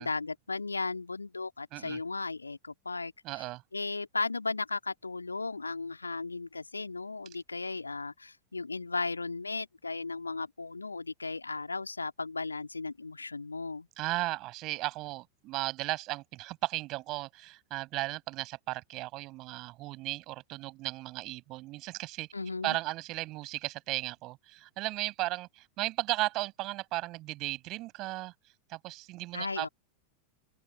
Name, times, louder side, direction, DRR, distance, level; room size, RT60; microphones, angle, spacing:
voice 1, 0.0-3.1 3.7-13.9 22.3-22.8 29.3-29.7, left 3 dB, 80° left, 2.4 m, -36 dB
voice 2, 3.2-3.6 14.0-22.3 22.6-29.7, right 19 dB, 40° right, 6.1 m, -36 dB
open air
figure-of-eight pair, 90°, 0 cm